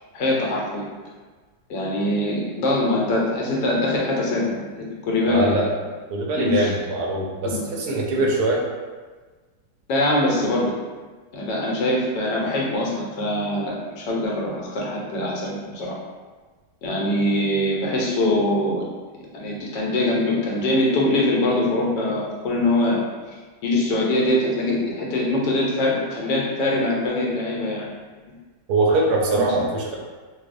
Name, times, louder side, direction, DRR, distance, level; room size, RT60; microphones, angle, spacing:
voice 1, 0.1-0.8 1.7-5.5 6.4-6.7 7.4-7.7 9.9-10.7 11.3-15.9 16.8-18.9 19.3-23.0 23.6-27.9 29.5-29.6, left 1 dB, 75° left, -3 dB, 1.3 m, -23 dB
voice 2, 5.3-5.7 6.1-8.6 28.7-30.0, right 2 dB, 70° right, -2 dB, 1.2 m, -22 dB
4.7 x 2.0 x 2.5 m, 1.4 s
omnidirectional pair, 1.9 m